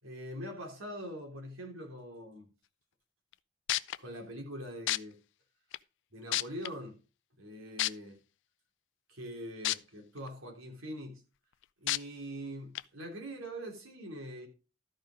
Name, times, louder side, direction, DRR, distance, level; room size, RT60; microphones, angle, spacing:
voice 1, 0.0-2.5 4.0-5.2 6.1-7.0 7.4-8.2 9.1-11.2 11.8-14.5, equal, 90° right, 3.3 m, -43 dB
sound 1, 3.3-3.4 3.7-4.0 4.9-5.0 5.7-5.8 6.3-6.7 7.8-7.9 9.6-9.8 10.3-10.4 11.9-12.0 12.7-12.8, left 15 dB, 60° left, 0.4 m, -29 dB
13.0 x 5.2 x 5.1 m
head